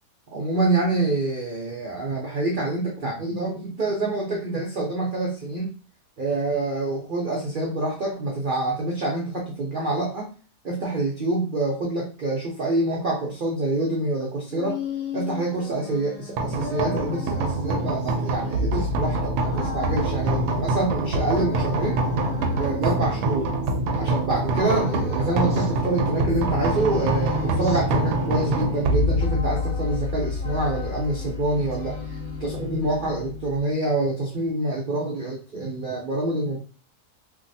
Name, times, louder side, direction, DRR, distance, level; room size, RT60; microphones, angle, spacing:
voice 1, 0.3-5.7 6.2-10.3 10.6-14.8 15.1-22.0 22.5-23.5 24.0-32.0 32.4-36.6, right 2 dB, 60° right, -3 dB, 0.5 m, -26 dB
sound 1, 14.2-24.1 24.5-26.4 26.6-30.1 30.4-31.4 31.7-32.7, left 6 dB, 65° left, 1.2 m, -38 dB
sound 2, 16.4-33.6, right 1 dB, 75° right, 1.1 m, -26 dB
Bowed string instrument, 26.7-33.8, left 5 dB, 10° left, 1.4 m, -37 dB
3.5 x 2.3 x 2.6 m, 0.38 s
omnidirectional pair, 1.7 m